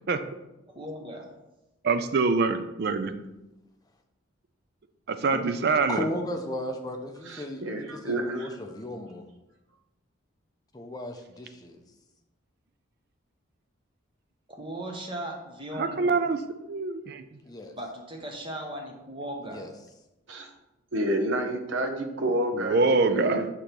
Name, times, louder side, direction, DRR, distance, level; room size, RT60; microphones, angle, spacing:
voice 1, 0.7-1.2 14.5-16.1 17.7-19.6, right 1 dB, 25° right, 1 dB, 0.9 m, -37 dB
voice 2, 1.8-3.1 5.1-6.0 15.7-16.4 16.7-17.2 22.5-23.5, right 4 dB, 50° right, 10 dB, 0.4 m, -25 dB
voice 3, 5.9-9.3 10.7-11.8 17.4-17.8 19.4-19.7, left 1 dB, 20° left, 4 dB, 0.5 m, -35 dB
voice 4, 7.3-8.5 20.3-20.5 20.9-23.4, right 1 dB, 65° right, 4 dB, 0.8 m, -29 dB
6.2 x 2.9 x 5.1 m, 0.97 s
head